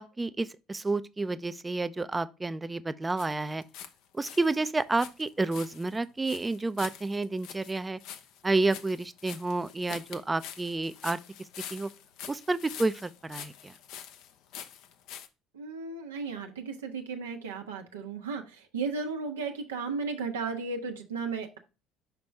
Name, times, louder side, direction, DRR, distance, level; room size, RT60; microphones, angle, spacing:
voice 1, 0.0-3.6 4.1-8.0 8.4-11.2 11.7-11.9 12.3-13.7, right 3 dB, 20° right, 0.6 m, -30 dB
sound 1, 3.2-15.3, left 9 dB, 65° left, 0.7 m, -45 dB
voice 2, 15.5-21.6, right 4 dB, 85° right, 1.0 m, -35 dB
5.9 x 5.2 x 3.4 m
hypercardioid pair, 60°, 0 cm